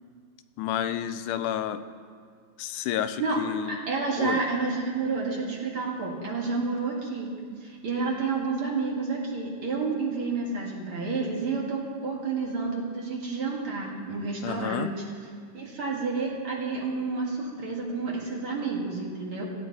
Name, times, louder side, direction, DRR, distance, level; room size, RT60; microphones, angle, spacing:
voice 1, 0.6-1.8 2.6-3.8 4.2-4.4 14.4-14.9, left 10 dB, 85° left, 11 dB, 2.1 m, -30 dB
voice 2, 3.7-7.3 7.6-14.9 15.5-19.4, right 4 dB, 45° right, -3 dB, 2.8 m, -30 dB
17.0 x 16.0 x 4.2 m, 2.1 s
omnidirectional pair, 3.6 m